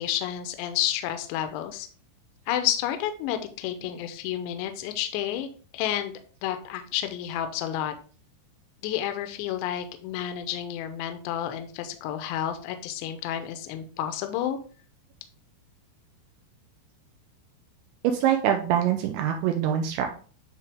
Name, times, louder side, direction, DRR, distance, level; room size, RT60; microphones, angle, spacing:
voice 1, 0.0-1.9 2.5-5.5 5.7-6.1 6.4-7.9 8.8-14.6, left 11 dB, 80° left, 8 dB, 2.7 m, -30 dB
voice 2, 18.0-20.1, right 9 dB, 85° right, 3 dB, 2.8 m, -24 dB
9.7 x 3.3 x 3.4 m, 0.41 s
omnidirectional pair, 5.6 m